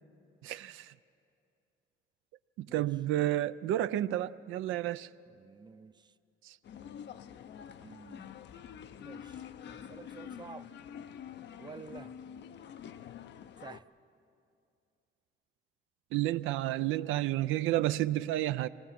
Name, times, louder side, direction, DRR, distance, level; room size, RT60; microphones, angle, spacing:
voice 1, 0.4-0.9 2.6-5.1 16.1-18.7, right 14 dB, 85° right, 0.4 m, -31 dB
voice 2, 2.7-3.0 5.3-6.1 7.8-8.3 9.0-10.7 11.6-12.1 13.6-13.9, right 5 dB, 20° right, 0.5 m, -50 dB
sound 1, 6.6-13.8, left 8 dB, 60° left, 0.6 m, -47 dB
24.0 x 18.5 x 5.9 m
cardioid pair, 90°, 20 cm